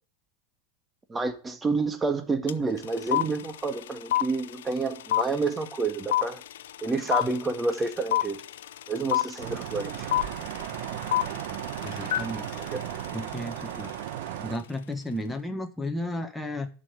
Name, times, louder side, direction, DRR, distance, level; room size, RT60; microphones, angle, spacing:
voice 1, 1.1-6.4 6.8-8.4 8.9-10.1 12.7-12.8, right 3 dB, 20° right, 1.8 m, -29 dB
sound 1, 2.5-2.6 2.8-13.9, left 13 dB, 75° left, 0.6 m, -28 dB
sound 2, 9.4-14.6, right 12 dB, 65° right, 1.3 m, -35 dB
voice 2, 11.8-12.5 13.1-13.9 14.4-16.7, left 1 dB, 5° left, 1.5 m, -33 dB
11.0 x 5.6 x 8.2 m
hypercardioid pair, 95°, 0 cm